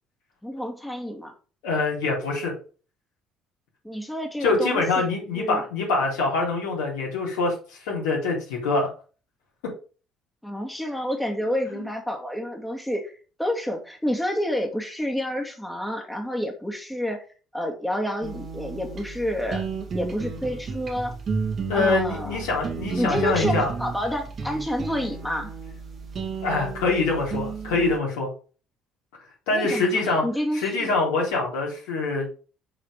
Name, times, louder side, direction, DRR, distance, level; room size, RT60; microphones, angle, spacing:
voice 1, 0.4-1.3 3.8-5.1 5.4-5.6 10.4-17.2 17.5-19.7 19.9-21.2 21.7-22.4 23.0-25.5 29.5-30.9, equal, 5° left, 1 dB, 2.3 m, -29 dB
voice 2, 1.6-2.5 4.4-7.5 7.8-8.9 21.7-23.7 26.4-28.3 29.5-30.2 30.5-32.3, left 3 dB, 75° left, -2 dB, 3.8 m, -24 dB
sound 1, 18.2-28.0, right 4 dB, 45° right, 2.7 m, -32 dB
7.5 x 4.9 x 5.2 m, 0.37 s
hypercardioid pair, 55°, 0 cm